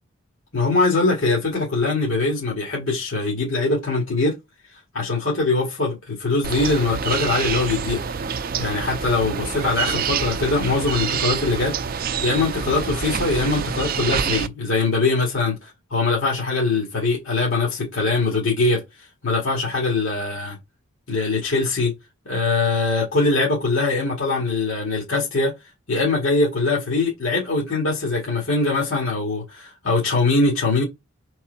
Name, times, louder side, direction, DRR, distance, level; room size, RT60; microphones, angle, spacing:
voice 1, 0.5-4.4 4.9-8.0 8.6-18.8 19.2-20.6 21.1-21.9 22.3-25.5 25.9-30.8, left 3 dB, 75° left, 2.2 m, -22 dB
sound 1, 6.4-14.5, right 6 dB, 45° right, 0.4 m, -27 dB
5.8 x 4.6 x 4.0 m
head